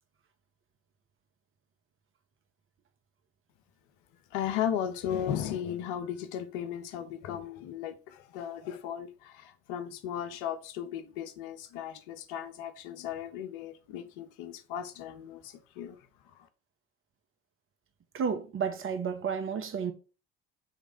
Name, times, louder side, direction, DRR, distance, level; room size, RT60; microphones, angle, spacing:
voice 1, 4.3-16.0, left 9 dB, 70° left, 0.9 m, -36 dB
voice 2, 18.1-19.9, right 6 dB, 40° right, 1.3 m, -31 dB
7.0 x 3.3 x 4.3 m
hypercardioid pair, 55°, 31 cm